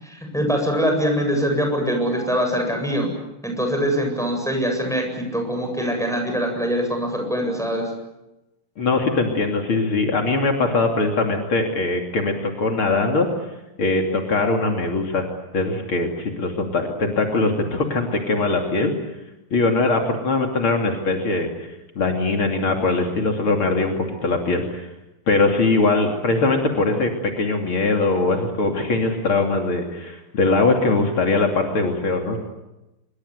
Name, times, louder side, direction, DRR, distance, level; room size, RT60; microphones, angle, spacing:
voice 1, 0.0-3.1 3.4-7.9, equal, ahead, 3 dB, 7.8 m, -23 dB
voice 2, 8.8-13.3 13.8-15.3 15.5-18.9 19.5-21.5 22.0-24.9 25.3-32.4, left 3 dB, 70° left, 2 dB, 3.6 m, -21 dB
27.0 x 24.0 x 8.1 m, 0.97 s
omnidirectional pair, 2.4 m